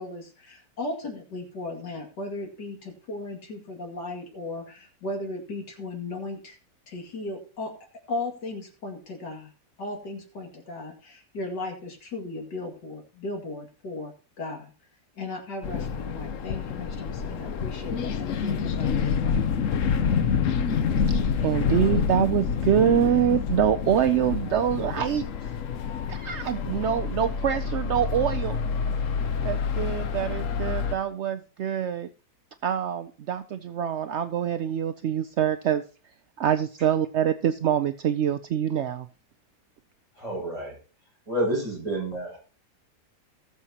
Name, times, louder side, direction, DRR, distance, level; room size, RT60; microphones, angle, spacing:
voice 1, 0.0-6.6 6.9-7.7 8.1-9.5 9.8-14.1 14.4-14.7 15.2-19.4, left 2 dB, 90° left, 2 dB, 3.0 m, -36 dB
sound 1, 15.6-31.0, left 6 dB, 60° left, 1.0 m, -27 dB
voice 2, 21.4-25.3 26.1-28.6 29.4-32.1 32.6-35.8 36.4-39.1, right 9 dB, 70° right, 10 dB, 0.6 m, -25 dB
voice 3, 40.2-40.8 41.3-42.4, right 1 dB, 20° right, -3 dB, 6.6 m, -29 dB
18.5 x 6.9 x 2.9 m, 0.37 s
omnidirectional pair, 1.8 m